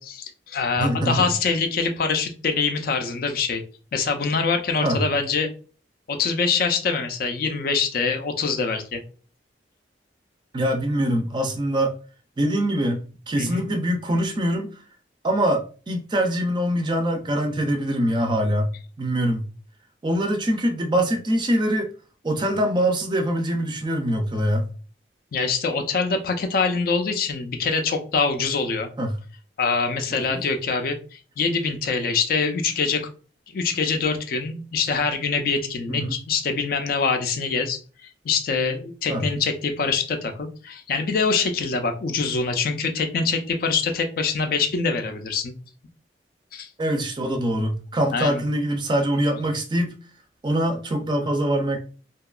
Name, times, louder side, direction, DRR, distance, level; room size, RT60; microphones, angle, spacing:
voice 1, 0.0-3.6 3.9-5.5 6.1-9.0 13.4-13.6 25.3-28.9 29.6-33.1 33.5-37.8 38.2-45.5 46.5-46.7 48.1-48.4, left 4 dB, 55° left, 0.4 m, -24 dB
voice 2, 0.8-1.3 4.8-5.0 10.5-11.9 12.4-13.0 13.3-14.7 15.2-19.5 20.0-21.9 22.2-24.7 29.0-29.2 30.1-30.4 35.9-36.2 39.1-39.3 46.8-50.0 50.4-51.8, right 1 dB, 25° right, 0.4 m, -23 dB
2.7 x 2.3 x 2.3 m
head